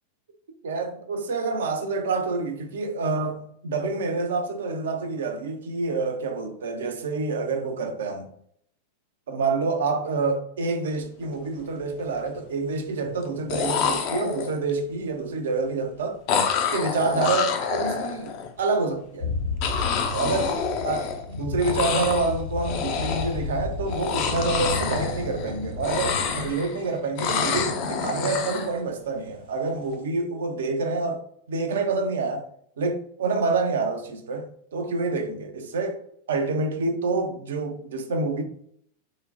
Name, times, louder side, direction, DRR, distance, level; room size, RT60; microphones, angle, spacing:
voice 1, 0.6-8.3 9.3-16.2 16.7-19.3 20.1-20.6 20.8-21.1 21.3-31.2 31.5-32.5 32.8-36.0 36.3-38.4, right 3 dB, 60° right, 0.5 m, -27 dB
sound 1, 11.1-11.3 11.6-12.2 13.2-13.3 13.5-14.7 16.3-18.5 19.6-21.3 21.6-22.3 22.6-23.4 23.9-25.5 25.8-26.8 27.2-28.7, left 6 dB, 45° left, 0.4 m, -27 dB
sound 2, 19.2-26.5, left 3 dB, 75° left, 0.7 m, -32 dB
3.7 x 2.0 x 2.7 m
figure-of-eight pair, 90°, 0 cm